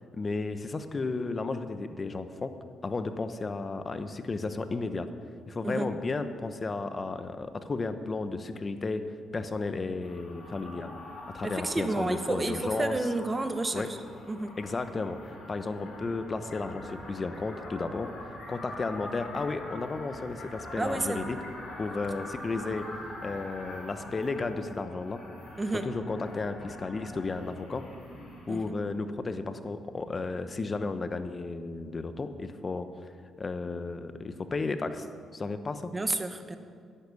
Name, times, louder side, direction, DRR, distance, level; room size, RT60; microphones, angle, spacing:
voice 1, 0.2-2.6 2.8-5.1 5.5-9.1 9.3-10.9 11.3-13.1 13.7-13.9 14.6-18.1 18.5-21.4 21.8-22.9 23.2-25.2 25.7-27.9 28.5-33.1 33.4-35.1 35.3-35.9, left 3 dB, 30° left, 10 dB, 1.0 m, -33 dB
sound 1, 10.0-28.6, left 1 dB, 60° left, 4.8 m, -44 dB
voice 2, 11.4-13.8 14.3-14.5 20.8-21.3 25.6-25.8 28.5-28.6 35.9-36.6, right 2 dB, 20° right, 9 dB, 1.2 m, -30 dB
11.5 x 10.5 x 8.4 m, 2.2 s
cardioid pair, 90°, 0 cm